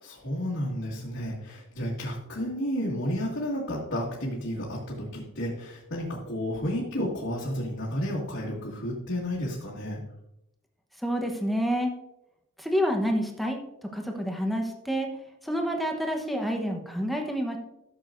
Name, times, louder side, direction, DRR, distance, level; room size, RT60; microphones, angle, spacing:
voice 1, 0.0-10.0, equal, 70° left, -7 dB, 2.0 m, -32 dB
voice 2, 11.0-11.9 12.6-13.6 13.9-15.1 15.4-17.6, equal, ahead, 2 dB, 0.9 m, -28 dB
13.5 x 6.9 x 2.6 m, 0.88 s
head